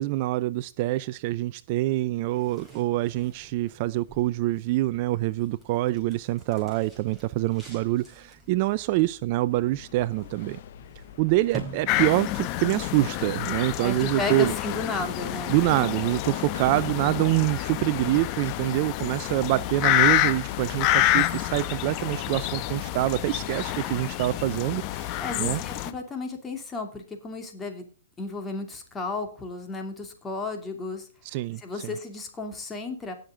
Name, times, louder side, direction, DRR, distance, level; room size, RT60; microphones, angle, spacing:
voice 1, 0.0-10.6 11.2-14.5 15.5-25.6 31.2-32.0, right 17 dB, 40° right, 18 dB, 0.4 m, -26 dB
sound 1, 2.2-12.5, right 4 dB, ahead, 5.0 m, -47 dB
sound 2, 9.5-25.3, left 11 dB, 60° left, 0.8 m, -42 dB
sound 3, 11.9-25.9, left 15 dB, 35° left, 0.9 m, -28 dB
voice 2, 13.8-15.6 19.5-19.7 25.2-27.9 28.2-31.1 31.6-33.1, left 3 dB, 15° left, 4 dB, 2.7 m, -33 dB
18.0 x 6.6 x 3.7 m, 0.38 s
hypercardioid pair, 135°, 0 cm